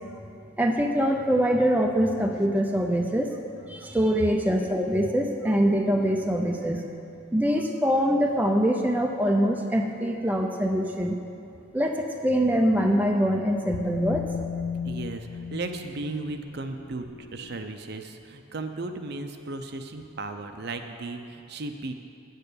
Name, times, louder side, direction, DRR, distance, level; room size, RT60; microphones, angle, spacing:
voice 1, 0.6-3.4 3.7-6.9 7.3-11.2 11.7-14.2, equal, 10° right, 2 dB, 0.5 m, -24 dB
sound 1, 12.3-17.7, left 6 dB, 85° left, 0.3 m, -37 dB
voice 2, 14.8-21.9, right 2 dB, 55° right, 6 dB, 0.7 m, -35 dB
8.9 x 6.8 x 8.4 m, 2.5 s
head